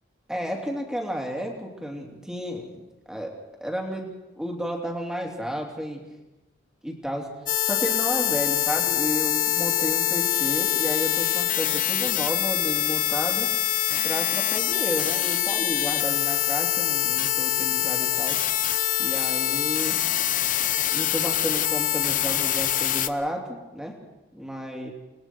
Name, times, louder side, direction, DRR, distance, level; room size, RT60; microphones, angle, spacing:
voice 1, 0.3-2.7 3.1-3.3 3.6-6.0 6.8-7.3 7.6-13.5 14.0-18.4 19.0-20.0 20.9-24.0 24.3-24.9, equal, 5° right, 1 dB, 3.0 m, -32 dB
sound 1, 7.5-23.1, left 11 dB, 40° left, 0.8 m, -24 dB
30.0 x 21.0 x 4.6 m, 1.0 s
head